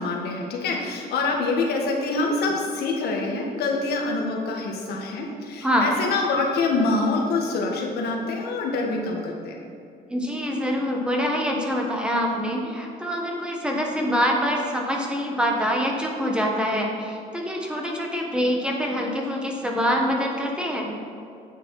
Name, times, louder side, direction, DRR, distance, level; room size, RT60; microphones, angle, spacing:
voice 1, 0.0-9.6, left 3 dB, 70° left, 0 dB, 1.7 m, -25 dB
voice 2, 10.1-21.0, equal, 5° right, -1 dB, 1.4 m, -25 dB
9.6 x 7.1 x 4.8 m, 2.5 s
cardioid pair, 110°, 17 cm